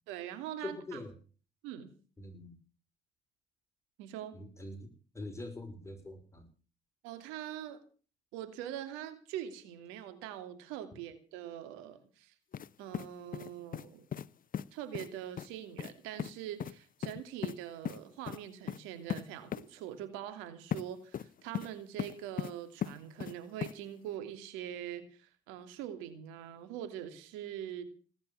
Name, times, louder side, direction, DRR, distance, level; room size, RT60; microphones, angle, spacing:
voice 1, 0.1-1.0 1.6-1.9 4.0-4.4 7.0-7.8 8.3-12.3 12.8-14.1 14.7-27.8, right 11 dB, 85° right, 10 dB, 2.8 m, -43 dB
voice 2, 0.6-1.1 2.2-2.5 4.3-4.9 5.1-6.5, left 2 dB, 15° left, 6 dB, 5.5 m, -43 dB
sound 1, 12.5-12.7 12.9-13.9 14.1-14.3 14.5-14.6 14.9-15.1 15.4-15.5 15.8-15.9 16.2-16.3 16.6-16.7 17.0-17.5 17.8-18.0 18.2-18.4 18.7-18.8 19.1-19.2 19.5-19.6 20.7-20.8 21.1-21.7 22.0-22.5 22.8-23.3 23.6-23.7, left 9 dB, 45° left, 0.9 m, -37 dB
18.5 x 9.5 x 7.1 m, 0.40 s
supercardioid pair, 70°, 20 cm